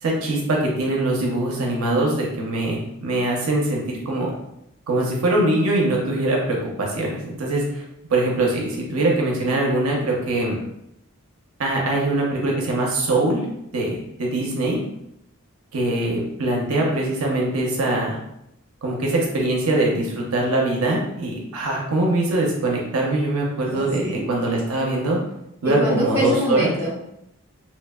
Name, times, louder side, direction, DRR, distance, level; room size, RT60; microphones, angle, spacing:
voice 1, 0.0-4.3 4.9-7.8 8.1-10.6 11.6-13.4 13.7-14.8 15.7-18.2 18.8-25.2 25.6-26.7, right 2 dB, 85° right, -1 dB, 0.6 m, -22 dB
voice 2, 23.7-24.2 25.6-27.1, equal, 10° right, -9 dB, 0.9 m, -24 dB
2.9 x 2.1 x 2.2 m, 0.80 s
head